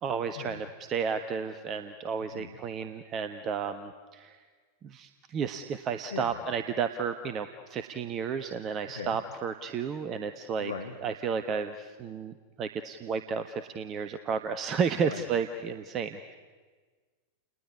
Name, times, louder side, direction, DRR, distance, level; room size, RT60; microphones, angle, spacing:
voice 1, 0.0-4.4 4.8-10.7 11.0-16.3, right 6 dB, 30° right, 10 dB, 1.3 m, -32 dB
voice 2, 6.1-6.4 9.0-9.2 10.6-10.9 15.0-15.2, left 5 dB, 70° left, 6 dB, 1.7 m, -38 dB
30.0 x 20.0 x 9.6 m, 1.5 s
figure-of-eight pair, 90°, 0 cm